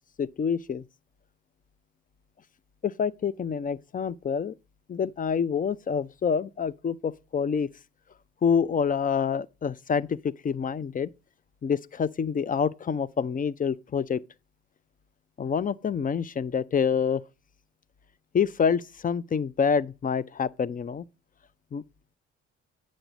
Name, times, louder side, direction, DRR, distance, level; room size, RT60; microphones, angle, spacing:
voice 1, 0.2-0.8 2.8-4.5 4.9-7.7 8.4-11.1 11.6-14.2 15.4-17.2 18.3-21.0 21.7-21.8, left 6 dB, 25° left, 0.5 m, -27 dB
8.9 x 6.3 x 4.0 m
figure-of-eight pair, 45°, 34 cm